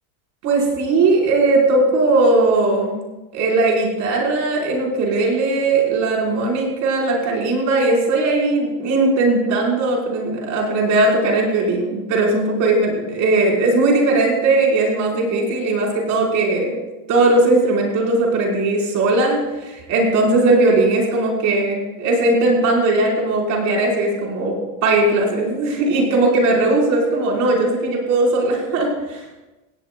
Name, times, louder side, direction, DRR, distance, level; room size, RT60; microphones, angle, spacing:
voice 1, 0.4-2.9 3.3-16.8 17.1-24.6 24.8-29.3, right 2 dB, 45° right, -1 dB, 4.6 m, -18 dB
17.5 x 17.0 x 2.3 m, 1.1 s
supercardioid pair, 150°, 41 cm